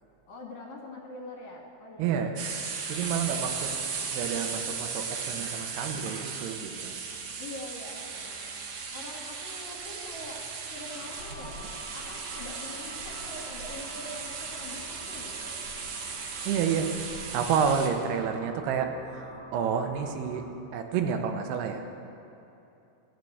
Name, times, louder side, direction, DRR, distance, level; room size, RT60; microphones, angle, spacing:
voice 1, 0.3-2.4 7.4-8.5 8.9-10.4 10.7-11.6 11.9-15.6, left 1 dB, 65° left, -1 dB, 3.1 m, -44 dB
voice 2, 2.0-2.3 2.9-3.7 4.1-7.0 16.5-16.9 17.3-20.4 20.7-22.0, right 7 dB, 90° right, 6 dB, 2.9 m, -29 dB
sound 1, 2.4-17.9, right 5 dB, 65° right, 2.2 m, -36 dB
sound 2, 10.9-20.5, left 1 dB, 45° left, 1.8 m, -48 dB
14.5 x 6.6 x 7.9 m, 2.9 s
omnidirectional pair, 4.5 m